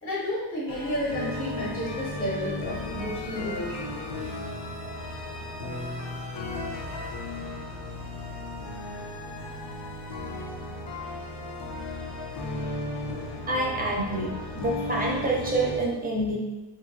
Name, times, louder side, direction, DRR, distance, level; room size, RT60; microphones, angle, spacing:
voice 1, 0.0-4.0, left 1 dB, 25° left, -6 dB, 0.7 m, -31 dB
sound 1, 0.7-15.8, left 1 dB, 80° left, 0.7 m, -35 dB
voice 2, 13.4-16.4, right 1 dB, 20° right, -2 dB, 0.5 m, -27 dB
2.9 x 2.7 x 2.6 m, 1.0 s
wide cardioid pair, 145°, 42 cm